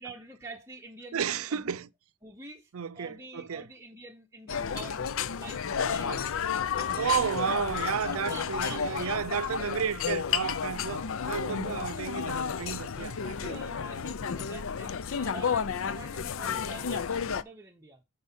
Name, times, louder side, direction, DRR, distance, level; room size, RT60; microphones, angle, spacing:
voice 1, 0.0-1.8 2.2-6.3 6.7-7.4 8.1-9.4 11.7-12.1 12.6-18.0, right 2 dB, 15° right, 0.9 m, -47 dB
voice 2, 1.1-1.9 2.7-3.6 5.8-6.2 7.0-13.6, right 7 dB, 70° right, 0.5 m, -32 dB
sound 1, 4.5-17.4, left 7 dB, 65° left, 0.5 m, -32 dB
10.0 x 4.6 x 5.5 m
head